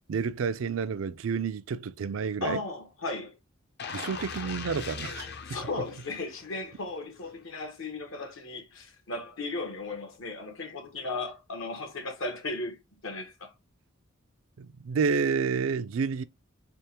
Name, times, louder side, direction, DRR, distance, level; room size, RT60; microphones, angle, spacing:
voice 1, 0.1-2.6 3.9-5.3 14.6-16.2, right 5 dB, 80° right, 0.4 m, -29 dB
voice 2, 2.4-3.4 5.4-13.5, left 3 dB, 80° left, 1.2 m, -36 dB
sound 1, 3.8-6.7 7.2-7.3, left 5 dB, 55° left, 0.6 m, -40 dB
3.5 x 3.4 x 2.9 m
head